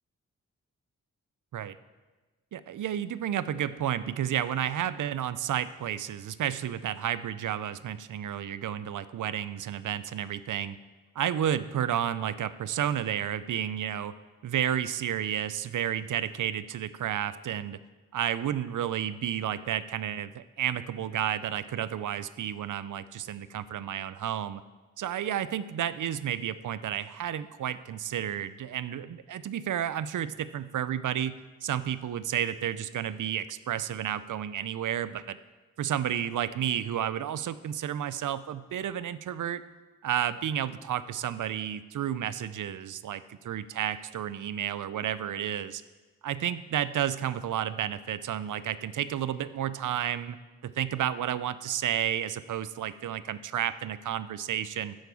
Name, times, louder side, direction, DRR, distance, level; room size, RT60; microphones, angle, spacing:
voice 1, 2.5-10.8 11.2-14.1 14.4-17.8 18.1-24.6 25.0-35.4 35.8-39.6 40.0-45.8 46.2-50.4 50.6-55.0, right 10 dB, 70° right, 15 dB, 0.5 m, -31 dB
11.0 x 4.6 x 7.0 m, 1.3 s
cardioid pair, 40°, 32 cm